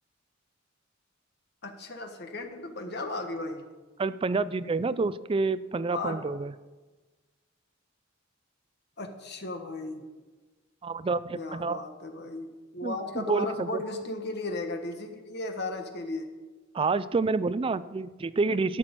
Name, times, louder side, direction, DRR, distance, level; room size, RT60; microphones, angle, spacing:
voice 1, 1.6-3.6 5.9-6.2 9.0-10.0 11.3-16.3, left 2 dB, 55° left, 5 dB, 1.5 m, -35 dB
voice 2, 4.0-6.5 10.8-11.8 12.8-13.7 16.7-18.8, right 3 dB, 25° right, 15 dB, 0.3 m, -28 dB
13.0 x 6.0 x 8.9 m, 1.3 s
head